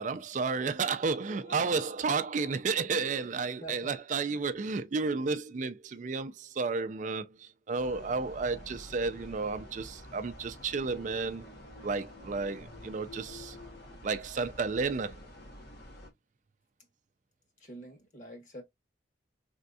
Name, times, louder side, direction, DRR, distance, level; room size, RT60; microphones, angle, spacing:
voice 1, 0.0-11.4 11.8-13.6 14.0-15.2, right 4 dB, 45° right, 0.4 m, -32 dB
voice 2, 3.6-3.9 17.6-18.6, right 1 dB, 45° left, 1.8 m, -46 dB
sound 1, 7.8-16.1, left 1 dB, 60° left, 1.5 m, -48 dB
4.3 x 3.4 x 2.6 m
head